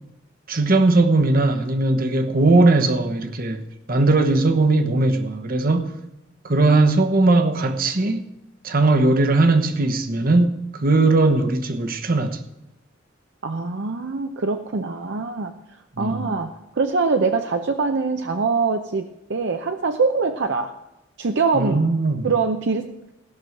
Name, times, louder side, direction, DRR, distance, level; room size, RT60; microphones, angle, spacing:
voice 1, 0.5-5.9 6.4-8.3 8.6-12.4 16.0-16.3 21.5-22.3, right 2 dB, 50° right, 1.1 m, -19 dB
voice 2, 13.4-15.6 16.0-20.7 21.2-21.9 22.2-22.9, right 4 dB, 65° right, 0.7 m, -23 dB
16.5 x 6.2 x 6.5 m
head